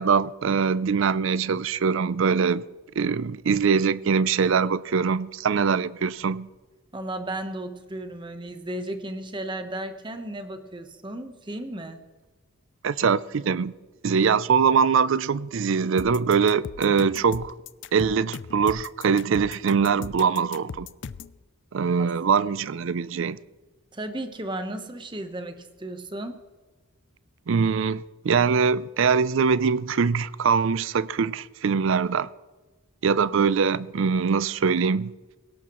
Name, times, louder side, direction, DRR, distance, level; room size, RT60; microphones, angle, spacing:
voice 1, 0.0-2.6 3.0-6.5 12.8-13.7 14.0-17.5 17.9-20.9 21.7-23.4 27.5-32.3 33.0-35.1, right 6 dB, 60° right, 0.4 m, -23 dB
voice 2, 6.9-12.0 22.0-22.1 23.9-26.4, right 1 dB, 20° right, 1.0 m, -34 dB
sound 1, 16.0-21.4, left 6 dB, 55° left, 0.4 m, -38 dB
20.0 x 17.5 x 3.1 m
head